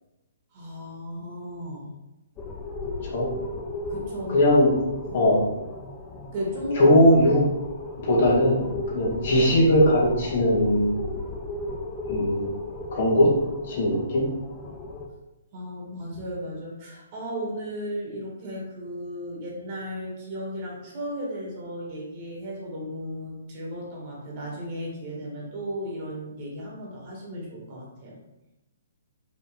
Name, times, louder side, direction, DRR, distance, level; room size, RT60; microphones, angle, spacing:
voice 1, 0.5-1.9 3.9-4.4 5.1-5.2 6.3-6.9 15.5-28.2, equal, 35° right, -4 dB, 2.1 m, -35 dB
sound 1, 2.4-15.1, left 2 dB, 20° left, 0.7 m, -35 dB
voice 2, 4.3-4.7 5.1-5.4 6.8-7.4 8.0-11.0 12.1-12.5 12.9-13.3 13.7-14.3, left 1 dB, 55° left, -4 dB, 2.1 m, -19 dB
5.2 x 4.4 x 4.3 m, 0.99 s
hypercardioid pair, 155°, 0 cm